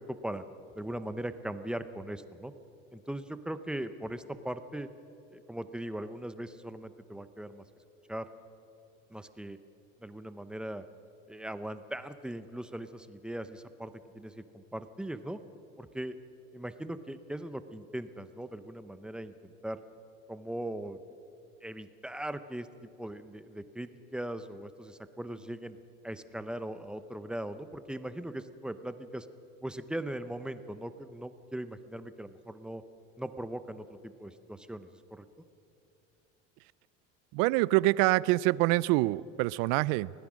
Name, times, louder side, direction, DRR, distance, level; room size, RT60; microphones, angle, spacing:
voice 1, 0.1-0.4 0.7-2.5 2.9-4.9 5.3-7.6 8.1-8.3 9.1-9.6 10.0-10.8 11.3-15.4 15.8-16.2 16.5-19.8 20.3-21.0 21.6-22.7 23.0-25.8 26.0-29.3 29.6-32.8 33.2-35.2, right 1 dB, 5° right, 11 dB, 0.6 m, -39 dB
voice 2, 37.3-40.1, right 19 dB, 75° right, 21 dB, 0.5 m, -25 dB
25.0 x 17.5 x 6.2 m, 2.8 s
cardioid pair, 150°, 30 cm